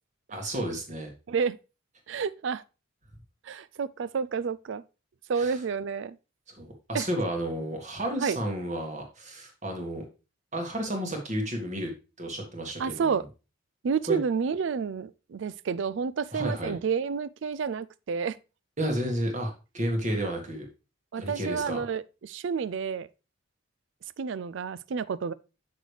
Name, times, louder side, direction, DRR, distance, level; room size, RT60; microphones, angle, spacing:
voice 1, 0.3-1.1 5.4-5.6 6.5-10.1 10.5-11.9 12.2-13.2 14.1-14.2 16.3-16.8 18.8-20.7 21.2-21.8, right 1 dB, 35° right, 1.8 m, -32 dB
voice 2, 2.1-2.6 3.4-4.8 5.3-6.2 6.9-7.1 8.2-8.4 12.8-13.2 13.8-18.4 21.1-23.1 24.2-25.3, right 6 dB, 60° right, 0.4 m, -30 dB
6.5 x 6.3 x 3.3 m
head